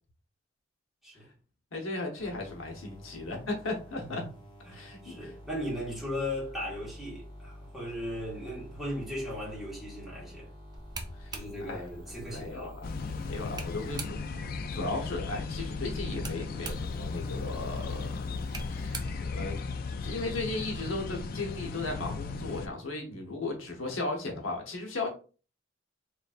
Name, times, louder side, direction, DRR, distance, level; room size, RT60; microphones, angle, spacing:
voice 1, 1.7-4.3 4.7-5.3 11.2-11.9 12.2-14.1 14.7-18.3 18.7-19.6 20.0-25.1, left 2 dB, 90° left, 1.0 m, -36 dB
sound 1, 2.2-19.2, equal, 25° left, 1.2 m, -48 dB
voice 2, 4.6-10.5 11.3-12.8, left 1 dB, ahead, 1.7 m, -37 dB
sound 2, 10.7-14.5 16.0-20.2, right 3 dB, 20° right, 0.5 m, -45 dB
sound 3, 12.8-22.7, left 4 dB, 50° left, 0.4 m, -36 dB
4.0 x 3.2 x 2.5 m
head